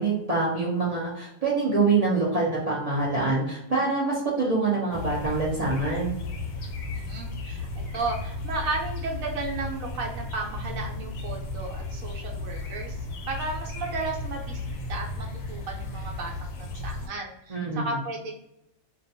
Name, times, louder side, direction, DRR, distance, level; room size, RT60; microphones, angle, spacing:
voice 1, 0.0-6.1 17.5-17.9, right 3 dB, 50° right, -6 dB, 0.4 m, -25 dB
sound 1, 4.9-17.1, left 2 dB, 75° left, 1.0 m, -34 dB
voice 2, 6.9-13.0 13.3-18.3, right 3 dB, 75° right, 1 dB, 1.0 m, -34 dB
2.4 x 2.2 x 2.5 m, 0.84 s
omnidirectional pair, 1.5 m